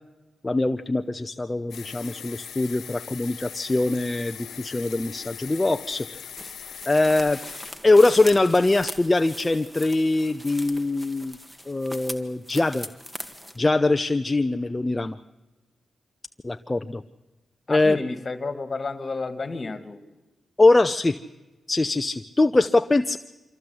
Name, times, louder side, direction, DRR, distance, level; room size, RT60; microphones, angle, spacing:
voice 1, 0.4-6.1 6.9-7.4 7.8-11.4 11.7-12.9 13.6-15.2 16.4-17.0 17.7-18.0 20.6-21.2 21.7-23.2, left 2 dB, 25° left, 8 dB, 0.6 m, -22 dB
sound 1, 1.7-7.7, left 8 dB, 80° left, 1.0 m, -40 dB
sound 2, 6.4-13.6, equal, 5° right, 1.8 m, -40 dB
voice 2, 17.7-20.0, left 3 dB, 40° left, 10 dB, 2.0 m, -31 dB
25.0 x 14.5 x 7.9 m, 1.1 s
cardioid pair, 60°, 0 cm